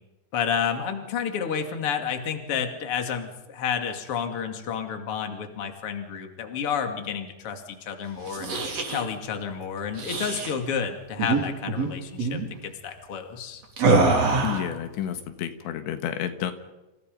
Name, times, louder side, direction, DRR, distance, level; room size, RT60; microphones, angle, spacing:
voice 1, 0.3-8.5 8.9-13.6, left 7 dB, 35° left, 5 dB, 2.7 m, -30 dB
sound 1, 8.2-9.0 9.9-10.5 11.2-11.4 11.7-11.9 12.2-12.5 13.8-14.7, right 3 dB, 40° right, 4.2 m, -24 dB
voice 2, 14.4-16.5, left 10 dB, 80° left, 8 dB, 3.7 m, -30 dB
29.5 x 27.5 x 5.4 m, 1.1 s
omnidirectional pair, 5.1 m